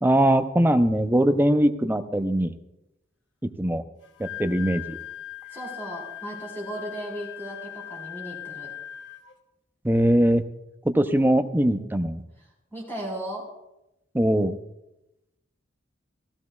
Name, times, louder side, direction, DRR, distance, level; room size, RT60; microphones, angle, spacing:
voice 1, 0.0-2.5 3.6-3.8 4.2-5.0 9.8-10.4 10.8-12.2 14.1-14.5, right 1 dB, 10° right, 7 dB, 0.5 m, -21 dB
Wind instrument woodwind instrument, 4.0-9.3, left 12 dB, 75° left, 1.0 m, -40 dB
voice 2, 5.5-8.7 12.4-13.4, right 1 dB, 10° left, -4 dB, 3.9 m, -36 dB
14.5 x 14.5 x 2.3 m, 0.91 s
head